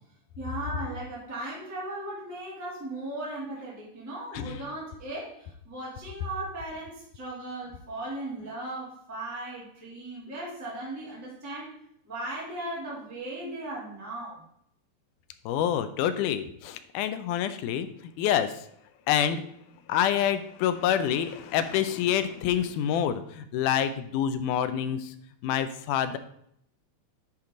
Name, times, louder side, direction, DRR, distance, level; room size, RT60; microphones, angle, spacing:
voice 1, 0.4-14.4, right 2 dB, 5° right, -8 dB, 2.5 m, -37 dB
voice 2, 15.5-18.7 19.1-19.4 19.9-25.1 25.4-26.2, left 9 dB, 85° left, 11 dB, 2.1 m, -27 dB
10.5 x 4.6 x 3.8 m, 0.71 s
omnidirectional pair, 3.6 m